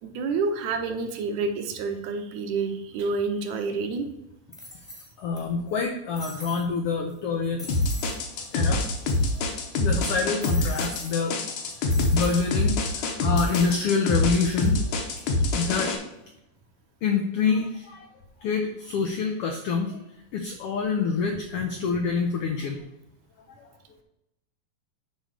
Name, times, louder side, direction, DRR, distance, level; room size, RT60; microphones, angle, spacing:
voice 1, 0.0-4.1, right 4 dB, 75° right, 6 dB, 2.1 m, -28 dB
sound 1, 3.7-3.8 4.5-5.4 5.7-5.8 6.2-6.7 7.1-7.2 7.6-8.2 8.5-8.6 8.8-9.5 10.4-11.1 11.9-12.5 13.4-13.8 14.3-14.7, equal, ahead, 0.8 m, -42 dB
voice 2, 5.2-7.7 8.5-8.8 9.3-9.4 9.8-14.8 15.5-15.9 17.0-18.1 18.4-22.8 23.5-23.7, left 5 dB, 85° left, 4 dB, 1.3 m, -27 dB
sound 2, 7.7-16.0, left 2 dB, 70° left, 2.5 m, -25 dB
8.4 x 3.8 x 6.6 m, 0.87 s
omnidirectional pair, 3.6 m